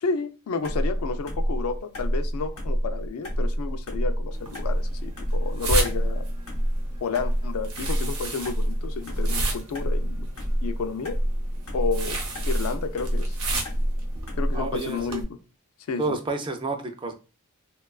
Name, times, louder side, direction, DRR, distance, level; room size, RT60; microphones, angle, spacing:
voice 1, 0.0-6.3 7.0-10.3 10.6-11.2 11.7-12.2 12.4-13.4 14.4-15.4 15.9-16.2, left 4 dB, 70° left, 0.3 m, -31 dB
sound 1, 0.6-14.8, equal, 90° left, 0.7 m, -28 dB
sound 2, 4.3-15.2, right 2 dB, 70° right, 0.8 m, -33 dB
voice 2, 14.5-15.2 16.0-17.1, right 3 dB, 20° right, 0.3 m, -30 dB
2.8 x 2.2 x 2.3 m
head